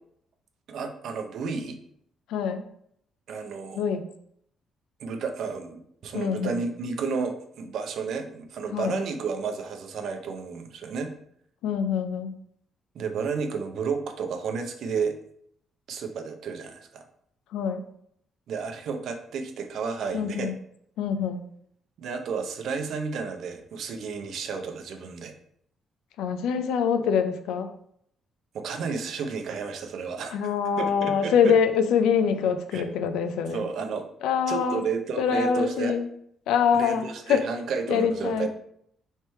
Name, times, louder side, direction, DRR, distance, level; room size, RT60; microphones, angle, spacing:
voice 1, 0.7-1.8 3.3-3.8 5.0-11.1 12.9-15.2 15.9-17.0 18.5-20.5 22.0-25.3 28.5-30.4 30.8-31.5 32.7-32.8 33.5-34.1 34.5-36.0 36.7-38.5, right 5 dB, 70° right, 5 dB, 0.6 m, -32 dB
voice 2, 2.3-2.6 3.7-4.1 6.1-6.6 8.7-9.0 11.6-12.4 17.5-17.8 20.1-20.5 21.0-21.4 26.2-27.7 30.3-33.6 34.2-34.8 35.2-36.1 36.5-37.4 37.9-38.5, left 7 dB, 90° left, 8 dB, 0.4 m, -24 dB
3.3 x 3.1 x 4.3 m, 0.69 s
cardioid pair, 90°, 0 cm